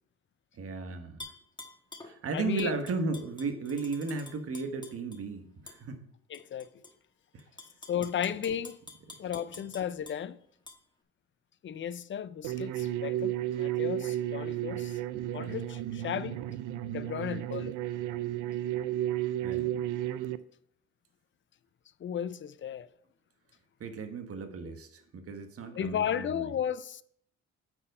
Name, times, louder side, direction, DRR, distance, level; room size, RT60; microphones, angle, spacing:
voice 1, 0.6-1.3 2.0-6.1 7.3-7.4 19.4-19.8 23.8-26.6, right 4 dB, 50° right, 1.2 m, -35 dB
Tap / Glass, 1.2-2.1 2.6-5.2 5.7-5.8 6.3-6.9 7.4-10.2 10.7-10.8, left 2 dB, 15° left, 1.2 m, -47 dB
voice 2, 2.3-2.7 6.3-6.7 7.9-8.8 9.2-10.4 11.6-15.0 15.3-16.4 16.9-17.8 22.0-22.9 25.7-27.0, left 9 dB, 40° left, 0.5 m, -34 dB
sound 1, 12.4-20.4, right 13 dB, 90° right, 0.5 m, -33 dB
8.7 x 4.5 x 5.4 m
cardioid pair, 90°, 30 cm